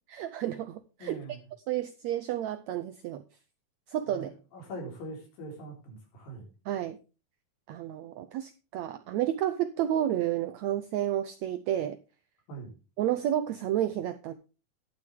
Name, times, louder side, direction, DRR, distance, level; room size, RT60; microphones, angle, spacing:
voice 1, 0.1-1.2 1.7-3.2 3.9-4.3 6.7-7.0 7.7-12.0 13.0-14.3, right 11 dB, 90° right, 11 dB, 1.6 m, -31 dB
voice 2, 1.0-1.5 4.1-6.5 12.5-12.7, right 2 dB, 80° left, 1 dB, 5.7 m, -42 dB
11.5 x 10.5 x 3.5 m, 0.32 s
omnidirectional pair, 4.0 m